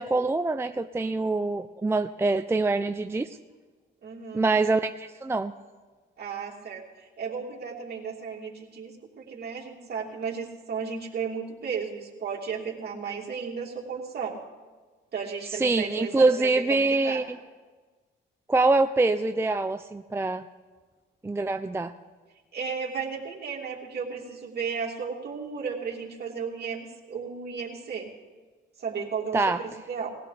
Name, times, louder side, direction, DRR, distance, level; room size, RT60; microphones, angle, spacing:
voice 1, 0.0-3.3 4.3-5.5 15.5-17.4 18.5-20.4 21.2-21.9 29.3-29.6, right 3 dB, 10° right, 8 dB, 0.5 m, -25 dB
voice 2, 4.0-4.5 6.2-14.4 15.1-17.2 22.5-28.1 28.8-29.5 29.9-30.1, right 6 dB, 55° right, -1 dB, 2.9 m, -34 dB
20.5 x 16.0 x 3.4 m, 1.4 s
cardioid pair, 90°, 20 cm